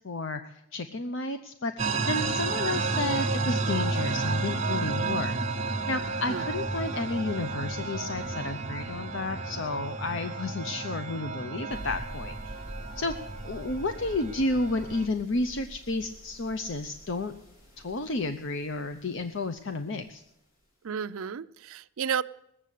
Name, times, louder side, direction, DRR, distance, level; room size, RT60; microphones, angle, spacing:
voice 1, 0.0-0.4 0.7-5.3 5.9-12.6 13.0-13.1 13.4-17.3 17.8-20.2, left 2 dB, 55° left, 8 dB, 0.7 m, -32 dB
sound 1, 1.8-15.1, right 3 dB, 30° right, 1.0 m, -31 dB
sound 2, 11.7-20.1, right 1 dB, 75° left, 3.1 m, -46 dB
voice 2, 20.8-22.2, right 7 dB, 75° right, 14 dB, 0.4 m, -32 dB
19.5 x 7.5 x 8.3 m, 0.79 s
head